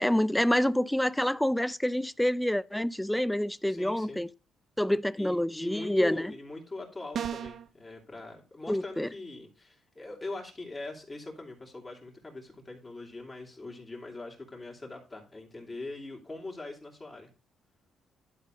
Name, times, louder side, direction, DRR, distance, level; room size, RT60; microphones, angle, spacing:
voice 1, 0.0-4.3 4.8-6.3 8.7-9.1, left 1 dB, 5° left, 0.4 m, -27 dB
voice 2, 3.6-4.2 5.1-17.3, left 2 dB, 25° left, 2.9 m, -41 dB
sound 1, 7.1-7.7, right 8 dB, 60° right, 0.7 m, -34 dB
11.5 x 4.2 x 5.2 m
cardioid pair, 90°, 0 cm